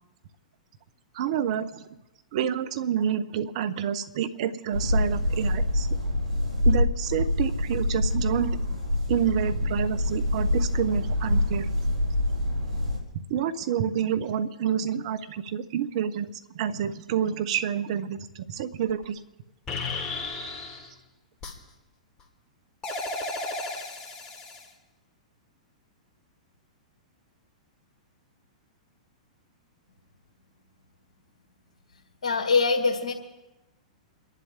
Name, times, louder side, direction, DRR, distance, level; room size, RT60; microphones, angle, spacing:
voice 1, 1.1-1.9 2.3-5.9 6.6-8.6 9.1-11.7 13.1-16.3 16.5-19.2, right 9 dB, 60° right, 13 dB, 1.0 m, -28 dB
sound 1, 4.7-13.0, left 1 dB, 80° right, 4.6 m, -26 dB
sound 2, 18.9-19.0 19.7-20.9 21.4-21.5 22.8-24.7, left 3 dB, 20° left, 3.6 m, -34 dB
voice 2, 32.2-33.1, left 4 dB, 80° left, -2 dB, 1.9 m, -23 dB
28.5 x 11.5 x 3.7 m, 1.0 s
hypercardioid pair, 115°, 4 cm